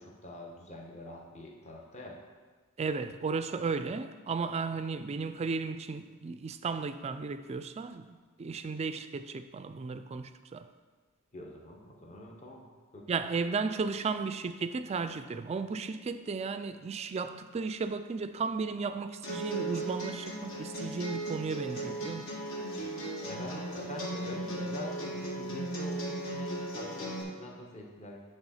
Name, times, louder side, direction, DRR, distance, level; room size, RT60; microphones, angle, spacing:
voice 1, 0.0-2.2 11.3-12.7 12.9-13.0 23.2-28.2, left 1 dB, 35° left, -1 dB, 1.1 m, -45 dB
voice 2, 2.8-10.7 13.1-22.3, right 4 dB, 30° right, 10 dB, 0.3 m, -34 dB
sound 1, 19.2-27.2, right 2 dB, 70° left, 1.6 m, -37 dB
8.9 x 3.6 x 5.6 m, 1.4 s
head